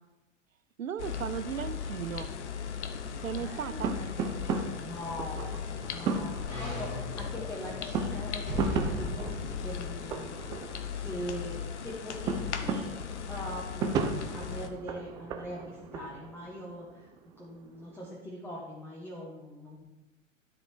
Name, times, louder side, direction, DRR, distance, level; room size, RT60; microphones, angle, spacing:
voice 1, 0.8-2.4 3.2-4.0, right 9 dB, 85° right, 16 dB, 0.6 m, -36 dB
sound 1, 1.0-14.7, left 7 dB, 60° left, 1.0 m, -38 dB
sound 2, 3.1-18.2, right 4 dB, 10° right, 0.3 m, -36 dB
voice 2, 3.4-4.1 4.5-5.5 5.9-8.6 8.9-10.4 10.9-12.8 13.3-13.9 14.3-17.1 17.4-19.9, equal, 5° left, -4 dB, 1.5 m, -42 dB
sound 3, 5.1-11.1 11.5-11.6, left 1 dB, 90° left, 3.0 m, -40 dB
12.5 x 5.2 x 4.5 m, 1.0 s
figure-of-eight pair, 100°, 39 cm